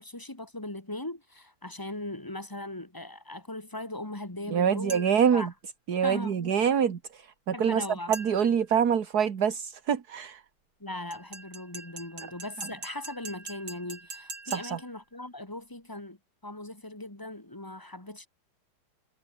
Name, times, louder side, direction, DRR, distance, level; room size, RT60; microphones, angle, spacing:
voice 1, 0.0-5.0 5.3-5.5 6.0-6.4 7.5-8.1 10.8-16.2 16.4-18.3, left 1 dB, 10° left, 2.5 m, -39 dB
voice 2, 4.5-5.5 5.9-10.4 14.5-14.8, right 7 dB, 50° right, 1.9 m, -26 dB
sound 1, 4.9-5.3 8.1-8.6 11.1-14.9, right 3 dB, 70° right, 6.7 m, -43 dB
omnidirectional pair, 2.3 m